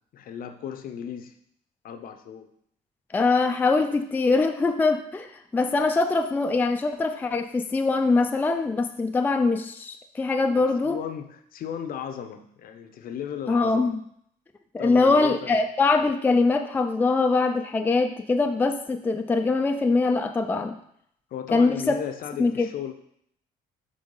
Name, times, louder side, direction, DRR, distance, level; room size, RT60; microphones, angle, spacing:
voice 1, 0.1-1.3 1.8-2.5 10.6-13.9 14.8-15.6 21.3-22.9, left 8 dB, 60° left, 8 dB, 0.7 m, -35 dB
voice 2, 3.1-11.0 13.5-14.0 14.7-20.8 21.5-22.0 22.4-22.7, left 3 dB, 10° left, 5 dB, 0.3 m, -23 dB
5.3 x 3.4 x 5.5 m, 0.70 s
cardioid pair, 110°, 17 cm